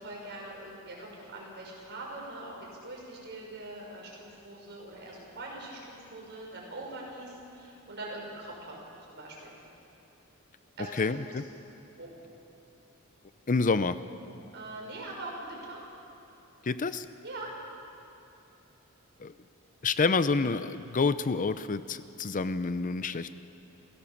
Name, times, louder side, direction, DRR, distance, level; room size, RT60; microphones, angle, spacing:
voice 1, 0.0-2.5 2.8-8.7 9.1-9.5 10.8-11.0 12.0-12.1 14.5-15.8 17.2-17.5, right 2 dB, 55° right, -2 dB, 6.2 m, -42 dB
voice 2, 11.0-11.4 13.5-14.0 16.6-17.1 19.2-19.3 19.8-23.4, left 4 dB, 40° left, 13 dB, 0.6 m, -28 dB
28.5 x 17.0 x 7.2 m, 3.0 s
head